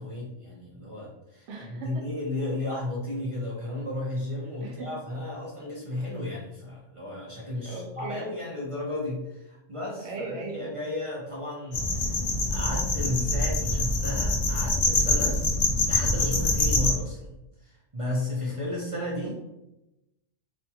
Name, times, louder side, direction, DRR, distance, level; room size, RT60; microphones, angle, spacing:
voice 1, 0.0-15.4 15.8-17.3 17.6-19.3, left 1 dB, 40° right, -5 dB, 0.5 m, -34 dB
voice 2, 1.5-2.0 4.6-4.9 7.6-8.3 10.0-10.6 19.2-19.3, right 3 dB, 80° right, 0 dB, 1.0 m, -37 dB
sound 1, 11.7-16.9, left 2 dB, 75° left, 0.3 m, -25 dB
2.8 x 2.3 x 2.7 m, 0.91 s
omnidirectional pair, 1.2 m